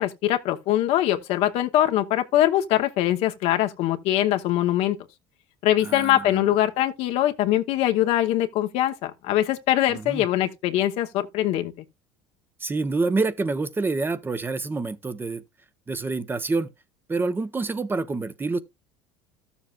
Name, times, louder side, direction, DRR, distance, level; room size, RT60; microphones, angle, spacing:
voice 1, 0.0-5.0 5.6-11.7, left 13 dB, 65° left, 0.9 m, -22 dB
voice 2, 5.8-6.5 9.9-10.3 12.6-15.4 15.9-16.7 17.1-18.6, right 3 dB, 20° right, 0.9 m, -27 dB
13.5 x 7.1 x 2.4 m
supercardioid pair, 100°, 11 cm